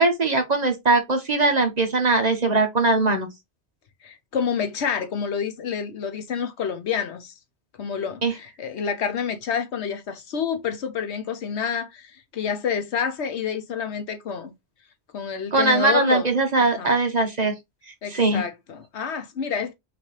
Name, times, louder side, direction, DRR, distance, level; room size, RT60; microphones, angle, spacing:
voice 1, 0.0-3.3 8.2-8.3 15.5-17.5 18.1-18.4, right 3 dB, 40° right, 0.9 m, -20 dB
voice 2, 4.0-7.3 7.8-14.5 15.1-16.3 16.6-16.9 18.0-19.7, left 7 dB, 70° left, 1.1 m, -28 dB
5.8 x 2.7 x 3.1 m
omnidirectional pair, 1.2 m